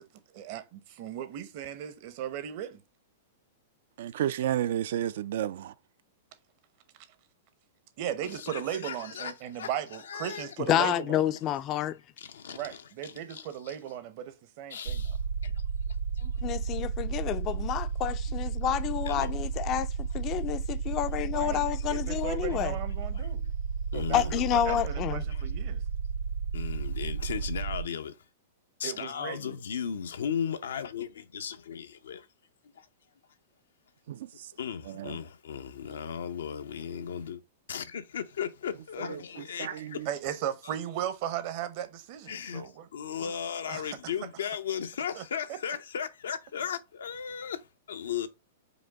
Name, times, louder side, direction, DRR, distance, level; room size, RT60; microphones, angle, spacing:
voice 1, 0.3-2.8 8.0-11.2 12.5-15.0 16.2-16.3 17.5-17.6 21.3-23.4 23.9-24.2 24.6-25.8 28.8-29.6 40.1-42.9 43.2-43.3 43.7-44.0 45.1-45.2 45.5-45.6, right 10 dB, 50° right, 0.8 m, -37 dB
voice 2, 4.0-5.7 34.1-34.3 34.9-35.2 39.1-39.2 39.6-39.9, right 11 dB, 65° right, 0.3 m, -31 dB
voice 3, 8.2-9.3 9.6-10.5 12.2-13.8 14.7-15.2 15.4-15.5 16.2-16.3 19.0-19.3 21.9-22.0 23.1-23.2 23.9-24.4 25.3-25.4 26.5-28.2 28.8-32.3 32.8-32.9 34.6-37.4 37.7-39.7 42.3-47.6 47.9-48.3, left 8 dB, 85° left, 0.6 m, -36 dB
voice 4, 10.7-12.0 16.4-22.8 24.1-25.2, left 11 dB, 35° left, 0.4 m, -29 dB
sound 1, 14.9-27.8, right 5 dB, 85° right, 0.8 m, -33 dB
5.0 x 2.2 x 3.5 m
hypercardioid pair, 130°, 0 cm